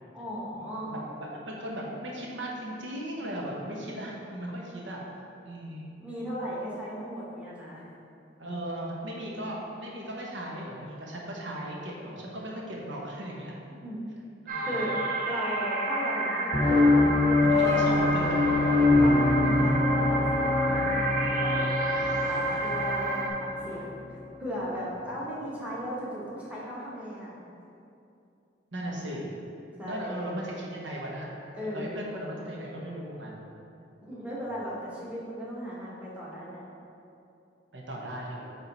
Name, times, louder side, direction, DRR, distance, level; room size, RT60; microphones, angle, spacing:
voice 1, 0.1-0.9 6.0-7.9 13.8-14.0 14.7-15.0 15.2-18.0 19.0-27.3 29.8-30.2 31.5-32.0 34.0-36.6, equal, 10° right, -7 dB, 1.3 m, -37 dB
voice 2, 0.7-5.0 5.4-5.9 8.4-13.6 14.4-14.9 17.4-18.7 21.8-22.7 28.7-29.3 29.8-31.4 31.7-33.4 37.7-38.6, right 1 dB, 90° right, -3 dB, 1.2 m, -37 dB
sound 1, 14.5-23.3, right 2 dB, 50° right, 0.9 m, -30 dB
sound 2, 16.5-23.9, left 2 dB, 15° left, 1.1 m, -24 dB
8.8 x 3.8 x 4.1 m, 2.7 s
head